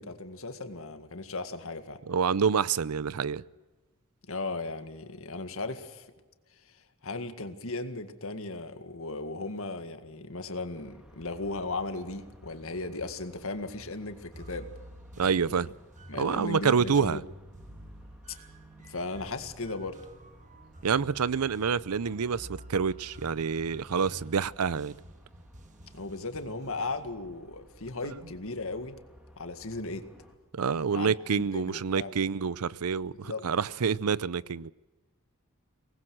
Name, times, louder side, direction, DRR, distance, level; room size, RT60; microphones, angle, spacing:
voice 1, 0.0-2.0 4.3-6.1 6.7-14.7 15.2-15.5 16.1-17.2 18.9-20.0 25.9-29.0 29.4-30.1 30.9-31.1 31.5-32.2 33.1-33.5, left 3 dB, 65° left, 2.0 m, -37 dB
voice 2, 2.1-3.4 15.2-15.7 16.2-17.2 20.8-24.9 28.0-28.1 30.5-34.7, right 6 dB, 90° right, 0.6 m, -27 dB
sound 1, 10.7-30.4, equal, 5° right, 3.0 m, -57 dB
sound 2, 14.3-27.1, right 1 dB, 35° right, 1.4 m, -50 dB
24.0 x 19.5 x 6.4 m
head